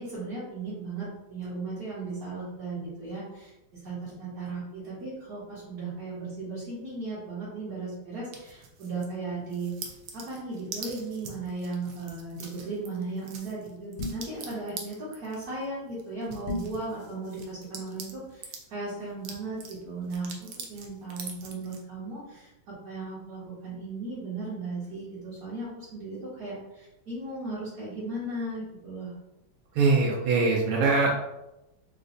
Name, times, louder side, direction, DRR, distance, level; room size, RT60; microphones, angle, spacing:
voice 1, 0.0-9.7 10.1-29.1, right 3 dB, 55° right, -9 dB, 1.2 m, -36 dB
sound 1, 8.3-9.1 9.5-18.7 19.1-21.8, right 5 dB, 75° right, 1.2 m, -44 dB
sound 2, 14.0-14.4 16.5-16.8, left 2 dB, 80° left, 1.6 m, -33 dB
voice 2, 29.7-31.3, right 3 dB, 90° right, -3 dB, 1.5 m, -23 dB
4.1 x 2.1 x 2.5 m, 0.94 s
omnidirectional pair, 2.3 m